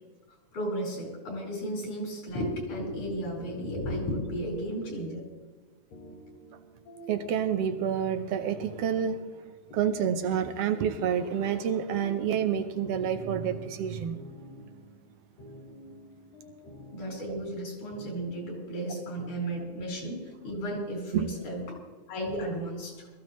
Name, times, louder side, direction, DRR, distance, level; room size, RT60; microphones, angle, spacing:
voice 1, 0.5-5.2 16.9-21.8 22.1-23.1, equal, 80° left, -1 dB, 5.9 m, -34 dB
sound 1, 3.4-20.1, equal, 60° left, 3.0 m, -50 dB
voice 2, 7.1-9.2 9.7-14.2 17.3-17.4 21.1-21.3, right 8 dB, 75° right, 8 dB, 1.5 m, -28 dB
21.5 x 14.5 x 3.1 m, 1.3 s
omnidirectional pair, 3.5 m